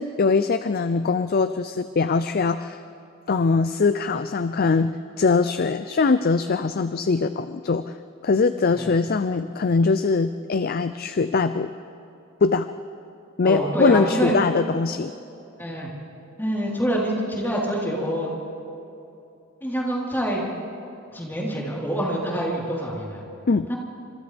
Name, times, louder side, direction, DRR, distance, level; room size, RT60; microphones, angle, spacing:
voice 1, 0.0-2.8 3.3-7.8 8.2-11.7 12.4-12.7 13.4-15.1 23.5-23.7, left 4 dB, 45° left, 11 dB, 0.5 m, -22 dB
voice 2, 13.4-14.3 15.6-15.9 16.4-18.3 19.6-20.5 21.1-23.2 23.7-23.8, equal, 10° left, -5 dB, 4.1 m, -26 dB
30.0 x 27.0 x 3.5 m, 2.8 s
head